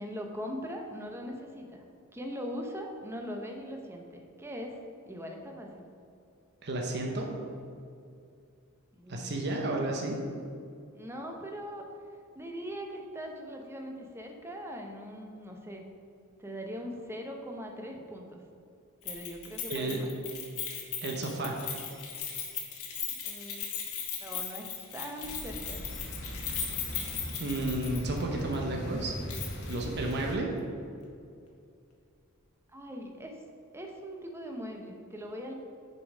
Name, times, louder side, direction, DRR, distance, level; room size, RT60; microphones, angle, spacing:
voice 1, 0.0-1.8 2.1-4.8 5.1-5.9 8.9-9.7 10.9-11.9 12.3-15.8 16.4-18.4 19.0-20.1 22.8-23.7 24.2-25.8 32.7-33.4 33.7-35.5, equal, 10° right, 2 dB, 0.7 m, -41 dB
voice 2, 6.6-7.3 9.1-10.2 19.7-20.0 21.0-21.6 27.4-29.1 29.7-30.5, right 2 dB, 55° right, 1 dB, 0.9 m, -32 dB
Keys jangling, 19.1-28.2 28.5-28.6 29.3-29.8 30.1-30.2, left 7 dB, 80° left, 1.2 m, -37 dB
sound 1, 25.2-30.4, equal, 55° left, 1.0 m, -40 dB
6.8 x 5.3 x 4.9 m, 2.4 s
head